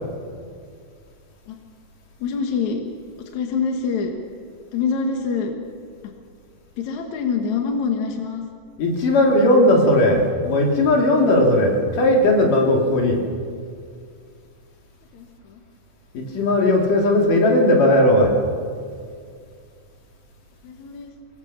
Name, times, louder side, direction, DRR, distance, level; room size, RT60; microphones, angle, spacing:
voice 1, 2.2-2.8 3.2-4.1 4.7-5.5 6.8-8.4 15.1-15.6 20.6-21.1, left 5 dB, 65° left, 3 dB, 2.8 m, -25 dB
voice 2, 8.8-13.2 16.1-18.3, left 1 dB, 80° left, 1 dB, 4.4 m, -17 dB
24.0 x 21.5 x 7.3 m, 2.2 s
omnidirectional pair, 3.7 m